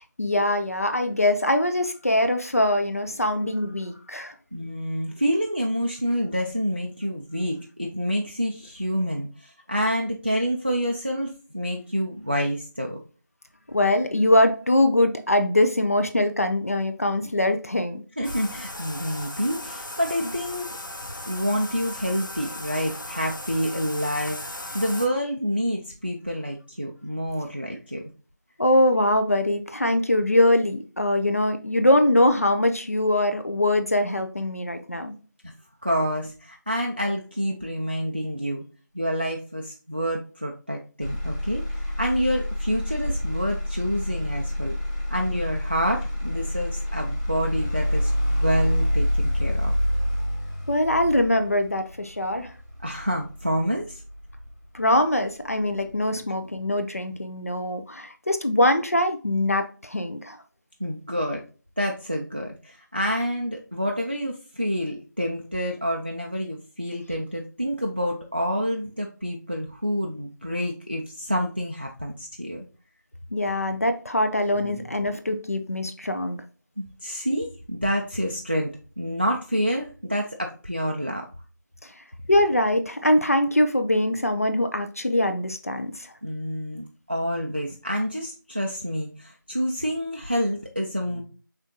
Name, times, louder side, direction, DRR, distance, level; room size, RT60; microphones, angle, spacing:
voice 1, 0.2-4.3 13.7-18.0 28.6-35.1 50.7-52.5 54.7-60.4 73.3-76.4 82.3-86.1, left 1 dB, 45° left, 7 dB, 0.5 m, -22 dB
voice 2, 4.5-13.0 18.2-20.7 21.3-24.4 24.7-28.0 35.8-38.6 38.9-44.8 45.1-49.7 52.8-54.0 60.8-61.4 61.8-72.6 74.5-74.9 76.8-81.3 86.2-91.2, equal, 30° right, 1 dB, 0.4 m, -28 dB
Bathtub (filling or washing), 18.2-25.1, left 1 dB, 75° left, 1.1 m, -37 dB
Motor vehicle (road), 41.0-55.0 55.5-56.0, equal, 15° left, 1.3 m, -27 dB
5.0 x 3.6 x 2.7 m, 0.37 s
figure-of-eight pair, 180°, 11 cm